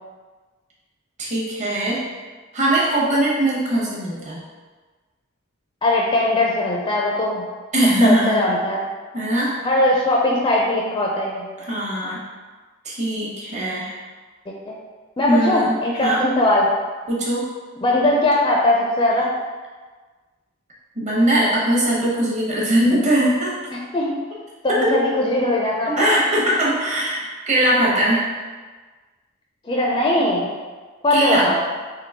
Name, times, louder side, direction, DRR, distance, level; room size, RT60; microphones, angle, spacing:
voice 1, 1.2-2.0 2.5-4.4 7.7-8.5 9.1-9.6 11.6-12.2 12.8-14.0 15.3-15.8 16.0-16.3 17.1-17.4 21.0-23.6 24.8-25.2 25.9-28.3 31.1-31.5, right 1 dB, 35° right, -5 dB, 0.9 m, -20 dB
voice 2, 5.8-7.4 8.0-8.8 9.6-11.5 14.7-14.8 15.2-16.7 17.8-19.3 23.9-24.1 24.8-26.2 29.7-30.5 31.0-31.6, left 1 dB, 20° left, -2 dB, 0.4 m, -20 dB
3.7 x 2.9 x 3.5 m, 1.4 s
head